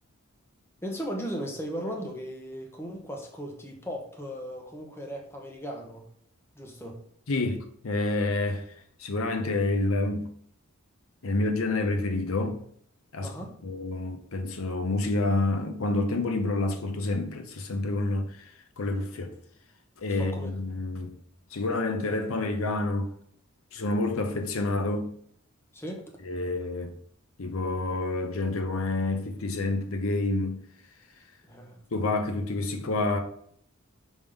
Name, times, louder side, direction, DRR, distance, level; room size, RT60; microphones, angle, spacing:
voice 1, 0.8-6.1 6.5-7.0 13.2-13.6 20.1-20.6 25.7-26.1 31.4-31.8, equal, 10° left, 0.9 m, -37 dB
voice 2, 7.3-7.6 7.8-8.6 9.0-10.3 11.2-12.6 13.1-13.3 13.6-18.4 18.8-19.3 20.0-21.2 21.5-23.1 23.7-25.1 26.3-26.9 27.4-30.6 31.9-33.2, left 2 dB, 75° left, 0.7 m, -28 dB
5.2 x 3.6 x 5.2 m
head